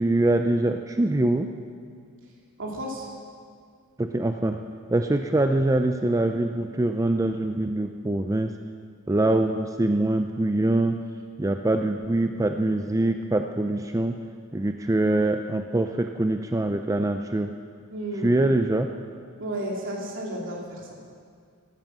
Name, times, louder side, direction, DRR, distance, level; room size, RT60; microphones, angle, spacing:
voice 1, 0.0-1.5 4.0-4.6 4.9-8.5 9.1-11.0 11.4-14.2 14.5-17.5 18.2-18.9, right 2 dB, 15° right, 6 dB, 0.4 m, -24 dB
voice 2, 2.6-3.1 17.9-18.3 19.4-20.9, right 1 dB, 60° right, -1 dB, 3.0 m, -32 dB
13.0 x 12.5 x 7.6 m, 2.1 s
head